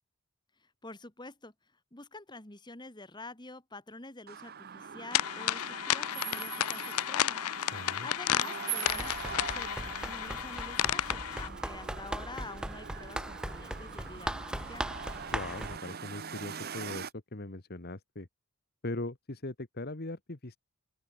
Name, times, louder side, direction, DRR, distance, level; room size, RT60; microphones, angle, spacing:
voice 1, 0.6-14.9, left 2 dB, 20° left, 2.0 m, -48 dB
sound 1, 4.3-17.1, right 7 dB, 45° right, 0.8 m, -43 dB
sound 2, 5.1-11.5, left 12 dB, 80° left, 0.4 m, -32 dB
voice 2, 7.7-8.1 15.3-18.3 18.8-20.6, left 2 dB, 45° left, 1.5 m, -40 dB
Run, 8.9-15.8, right 1 dB, 5° right, 0.5 m, -39 dB
open air
head